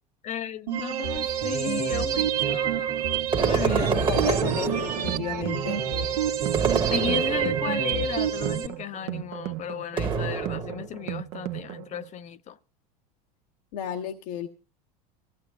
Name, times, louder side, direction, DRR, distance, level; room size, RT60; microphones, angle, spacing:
voice 1, 0.2-3.9 6.9-12.6, left 10 dB, 35° left, 0.7 m, -35 dB
sound 1, 0.7-8.7, right 9 dB, 85° right, 1.5 m, -27 dB
sound 2, 3.3-5.3 6.5-7.7 10.0-11.0, right 6 dB, 25° right, 1.2 m, -27 dB
voice 2, 3.6-5.8 13.7-14.5, left 9 dB, 70° left, 1.1 m, -33 dB
sound 3, 4.2-12.2, right 16 dB, 65° right, 0.8 m, -37 dB
24.0 x 15.0 x 2.3 m
hypercardioid pair, 100°, 20 cm